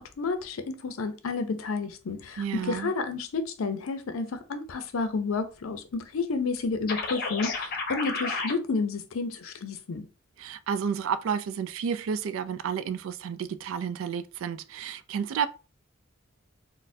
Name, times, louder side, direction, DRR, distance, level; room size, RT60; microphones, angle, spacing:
voice 1, 0.0-10.1, left 4 dB, 85° left, 0.5 m, -31 dB
voice 2, 2.4-2.9 10.4-15.5, right 7 dB, 75° right, 0.3 m, -31 dB
sound 1, 6.9-8.5, left 4 dB, 50° left, 0.7 m, -31 dB
4.1 x 2.1 x 2.6 m
head